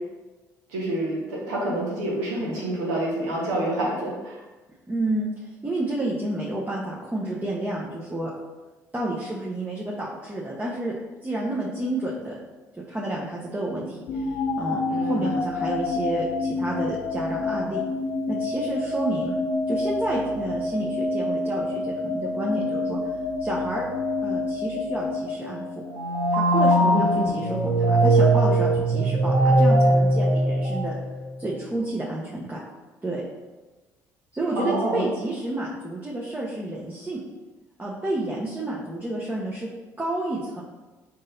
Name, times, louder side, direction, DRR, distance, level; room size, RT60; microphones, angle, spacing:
voice 1, 0.7-4.4 14.9-15.3 26.8-27.3 34.6-35.1, right 1 dB, 85° right, -4 dB, 1.2 m, -27 dB
voice 2, 4.9-5.3 5.6-8.3 8.9-10.9 11.2-12.4 12.8-17.8 18.3-19.4 19.7-23.0 23.4-23.8 24.2-25.6 26.3-30.9 31.4-32.6 33.0-33.2 34.3-37.2 37.8-39.7 40.0-40.6, right 1 dB, 20° right, -5 dB, 0.8 m, -30 dB
sound 1, 14.1-26.2, left 2 dB, 70° left, 0.5 m, -28 dB
sound 2, 25.9-31.4, right 1 dB, 45° right, 0.9 m, -20 dB
4.0 x 3.8 x 2.7 m, 1.2 s
hypercardioid pair, 55°, 8 cm